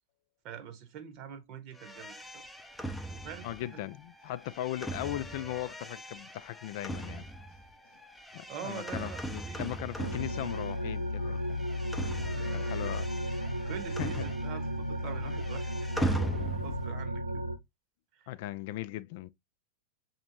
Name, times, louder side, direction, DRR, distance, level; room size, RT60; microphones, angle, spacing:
voice 1, 0.4-2.5 3.1-3.9 8.2-9.7 12.2-13.0 13.6-16.2 16.6-17.4 18.1-18.3, right 8 dB, 40° right, 1.1 m, -45 dB
sound 1, 1.8-11.1 11.3-14.8 15.0-16.9, right 1 dB, 5° left, 0.5 m, -39 dB
voice 2, 3.4-7.3 8.3-11.7 12.5-13.6 14.0-14.3 18.3-19.3, left 14 dB, 50° left, 0.3 m, -38 dB
sound 2, 10.0-17.6, equal, 80° right, 0.5 m, -34 dB
6.0 x 2.9 x 2.8 m
figure-of-eight pair, 90°, 0 cm